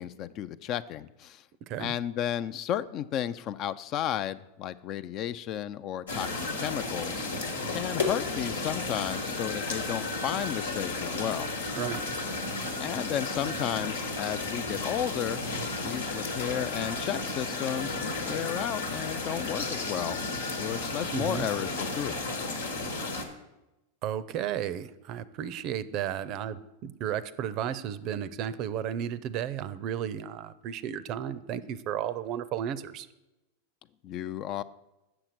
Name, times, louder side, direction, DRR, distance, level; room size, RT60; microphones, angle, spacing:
voice 1, 0.0-1.4 1.8-7.3 7.7-11.5 12.8-15.5 15.8-20.2 20.6-22.2 34.0-34.6, left 11 dB, 45° left, 15 dB, 0.4 m, -33 dB
voice 2, 1.6-1.9 11.8-12.0 21.1-21.5 24.0-33.1, right 10 dB, 45° right, 16 dB, 0.5 m, -33 dB
sound 1, 6.1-23.2, left 3 dB, 90° left, 1.3 m, -33 dB
7.8 x 6.3 x 5.9 m, 0.98 s
hypercardioid pair, 110°, 0 cm